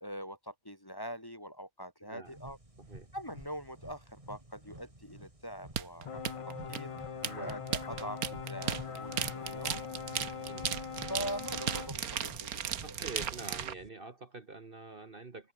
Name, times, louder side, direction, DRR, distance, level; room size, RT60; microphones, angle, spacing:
voice 1, 0.0-2.6 3.1-6.2 6.5-6.9 7.4-8.2 8.5-9.9 11.1-12.9, equal, 15° left, 2.1 m, -43 dB
voice 2, 2.0-2.4 2.8-3.1 7.2-7.6 10.5-10.8 12.8-15.5, right 3 dB, 40° right, 1.6 m, -46 dB
sound 1, 2.3-13.9, right 1 dB, 20° right, 3.4 m, -51 dB
sound 2, 5.8-13.7, right 8 dB, 75° right, 1.6 m, -36 dB
sound 3, 6.0-11.9, left 6 dB, 50° left, 0.4 m, -42 dB
open air
omnidirectional pair, 1.6 m